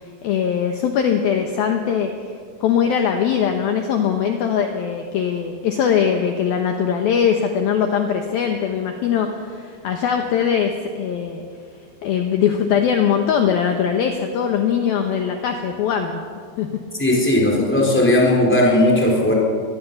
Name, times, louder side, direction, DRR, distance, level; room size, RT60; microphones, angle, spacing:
voice 1, 0.2-2.1 2.6-11.4 12.0-16.2 16.6-16.7, left 7 dB, 70° left, 4 dB, 2.6 m, -21 dB
voice 2, 17.0-19.3, left 1 dB, 5° left, -2 dB, 3.9 m, -16 dB
23.0 x 20.0 x 7.0 m, 2.1 s
omnidirectional pair, 5.3 m